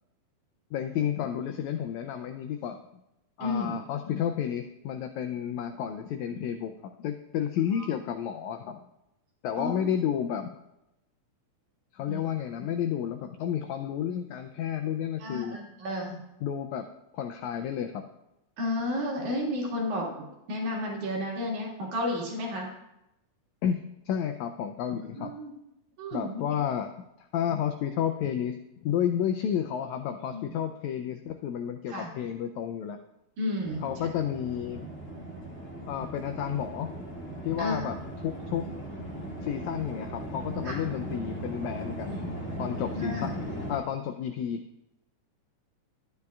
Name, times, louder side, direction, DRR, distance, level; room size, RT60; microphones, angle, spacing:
voice 1, 0.7-2.8 3.4-8.8 9.4-10.5 11.9-15.6 16.4-16.8 17.1-18.0 23.6-23.8 24.1-25.3 26.1-26.9 27.2-28.6 28.8-33.0 33.8-34.9 35.9-36.9 37.4-38.6 39.4-42.2 42.6-43.3 43.7-44.6, left 9 dB, 85° left, 7 dB, 1.6 m, -31 dB
voice 2, 3.4-3.8 7.8-7.9 9.6-9.9 12.1-12.2 15.2-16.2 18.6-22.7 25.2-25.5 26.0-26.4 30.3-30.6 31.9-32.1 33.4-33.9 37.6-37.9 40.6-40.8 42.1-42.4 42.9-43.4, left 1 dB, 70° right, -2 dB, 3.3 m, -32 dB
sound 1, 33.6-43.8, right 1 dB, 5° left, 0.8 m, -38 dB
13.0 x 9.6 x 2.3 m, 0.89 s
omnidirectional pair, 3.7 m